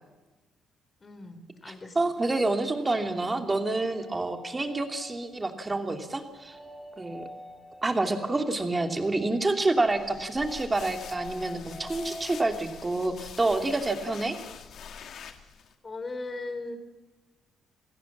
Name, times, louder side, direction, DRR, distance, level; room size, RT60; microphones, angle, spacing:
voice 1, 1.0-2.0 15.8-16.8, left 2 dB, 30° left, 10 dB, 3.7 m, -38 dB
voice 2, 1.6-6.6 7.0-7.2 7.8-14.4, right 2 dB, 20° right, 5 dB, 2.8 m, -28 dB
sound 1, 3.9-12.6, equal, ahead, 3.6 m, -45 dB
sound 2, 9.8-15.7, left 7 dB, 65° left, 2.1 m, -45 dB
27.5 x 17.0 x 7.3 m, 1.2 s
cardioid pair, 90°, 0 cm